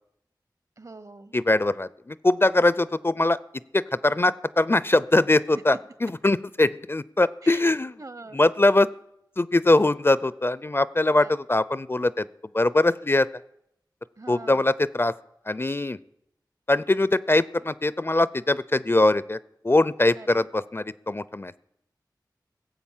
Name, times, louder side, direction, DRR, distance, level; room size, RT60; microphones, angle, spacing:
voice 1, 0.8-1.3 5.5-5.8 7.4-7.7 8.0-8.4 11.2-11.3 14.2-14.7 20.2-20.5, right 2 dB, 50° right, 14 dB, 0.8 m, -42 dB
voice 2, 1.3-3.4 3.7-5.8 6.0-7.9 8.3-8.9 9.4-12.2 12.5-13.3 14.3-15.1 15.5-16.0 16.7-19.4 19.6-21.5, left 2 dB, 30° left, 18 dB, 0.4 m, -22 dB
17.5 x 7.9 x 7.3 m, 0.79 s
wide cardioid pair, 70°, 8 cm